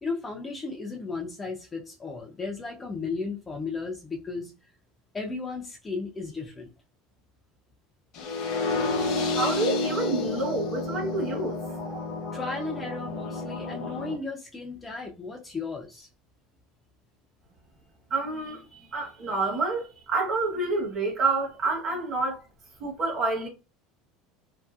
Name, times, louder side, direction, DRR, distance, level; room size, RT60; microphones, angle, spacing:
voice 1, 0.0-4.5 5.1-6.7 12.3-16.1, left 4 dB, 15° left, 0.4 m, -35 dB
sound 1, 8.1-14.1, left 3 dB, 50° left, 0.8 m, -30 dB
voice 2, 9.3-12.0 18.1-22.4 22.8-23.5, right 3 dB, 35° right, 1.0 m, -28 dB
2.6 x 2.6 x 2.3 m
cardioid pair, 145°, 0 cm